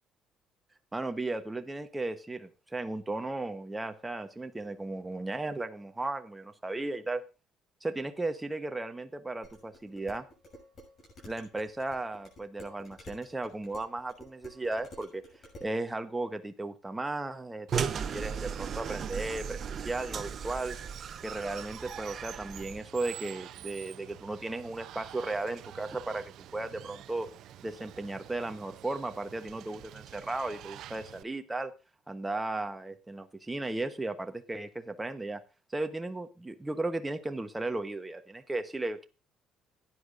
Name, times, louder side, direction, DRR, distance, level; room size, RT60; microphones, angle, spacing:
voice 1, 0.9-7.2 7.8-10.3 11.3-15.2 15.6-20.8 21.2-27.3 27.6-31.7 32.1-35.4 35.7-39.1, right 2 dB, 10° right, 7 dB, 1.0 m, -35 dB
Dishes pots and pans, 9.4-15.8, left 1 dB, 40° left, 6.8 m, -52 dB
sound 1, 17.7-22.8, right 7 dB, 40° right, 0.9 m, -36 dB
Water, 17.7-31.2, right 12 dB, 70° right, 0.6 m, -48 dB
17.0 x 10.0 x 2.6 m, 0.29 s
cardioid pair, 120°, 0 cm